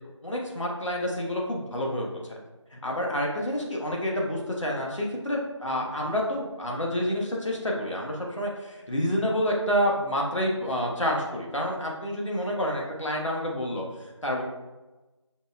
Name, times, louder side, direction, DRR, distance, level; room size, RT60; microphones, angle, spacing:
voice 1, 0.2-2.4 2.7-14.4, equal, 75° left, -2 dB, 1.2 m, -28 dB
5.2 x 3.1 x 2.5 m, 1.1 s
figure-of-eight pair, 175°, 16 cm